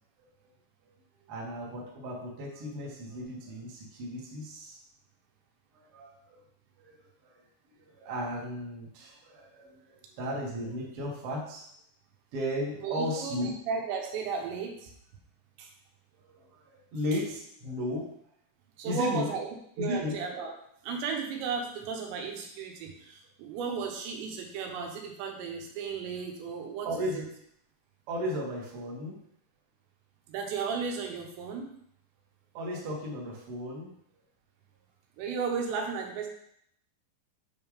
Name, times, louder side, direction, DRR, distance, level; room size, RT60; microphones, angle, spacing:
voice 1, 1.1-4.8 5.7-6.4 6.8-6.9 7.2-7.4 7.8-11.7 12.3-13.5 16.2-18.1 18.8-19.3 19.8-20.2 26.8-27.2 28.1-29.2 32.5-33.9, equal, 55° right, -4 dB, 1.7 m, -35 dB
voice 2, 12.8-14.9 15.6-15.7 18.8-20.5 20.8-26.9 27.1-27.2 30.3-31.7 35.2-36.3, right 5 dB, 85° right, 2 dB, 3.2 m, -34 dB
7.9 x 3.6 x 4.9 m, 0.70 s
omnidirectional pair, 5.0 m